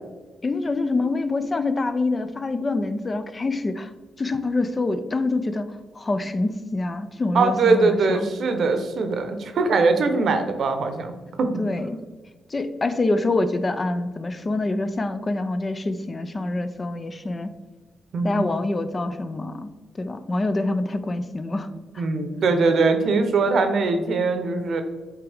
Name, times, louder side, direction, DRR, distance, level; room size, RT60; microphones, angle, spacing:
voice 1, 0.4-3.9 4.2-8.3 11.6-12.0 12.5-17.5 18.2-19.7 19.9-21.7 21.9-22.1, left 2 dB, 30° left, 10 dB, 0.4 m, -26 dB
voice 2, 7.3-11.1 11.4-11.5 18.1-18.4 22.0-24.8, right 4 dB, 65° right, 7 dB, 0.8 m, -21 dB
8.0 x 3.5 x 3.5 m, 1.3 s
cardioid pair, 80°, 0 cm